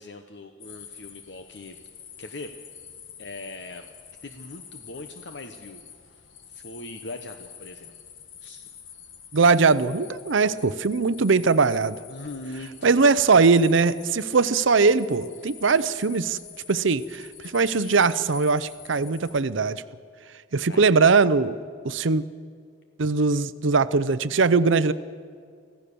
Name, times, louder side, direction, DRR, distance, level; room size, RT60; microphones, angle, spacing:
voice 1, 0.0-1.8 2.2-2.5 3.2-3.9 4.2-5.8 6.1-7.9 8.4-8.6 12.1-13.1 20.7-21.0, left 2 dB, 60° left, 6 dB, 1.0 m, -40 dB
sound 1, 0.6-19.4, left 8 dB, 75° left, 1.8 m, -46 dB
voice 2, 9.3-12.0 12.8-16.4 16.7-19.8 20.5-21.6 21.8-22.2 23.0-24.9, right 4 dB, 75° right, 14 dB, 0.6 m, -20 dB
24.5 x 16.0 x 6.9 m, 2.1 s
head